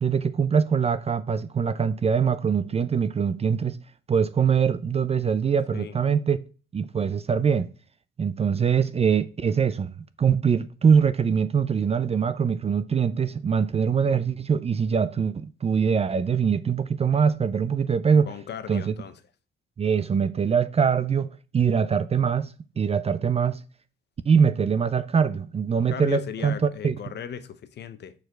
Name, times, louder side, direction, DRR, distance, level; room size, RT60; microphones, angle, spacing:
voice 1, 0.0-3.8 4.1-6.4 6.7-7.7 8.2-18.3 18.7-18.9 19.8-23.6 24.3-27.0, right 6 dB, 30° right, 0.5 m, -23 dB
voice 2, 18.3-19.2 25.9-28.1, left 8 dB, 60° left, 0.9 m, -37 dB
6.6 x 4.8 x 4.5 m
cardioid pair, 90°, 20 cm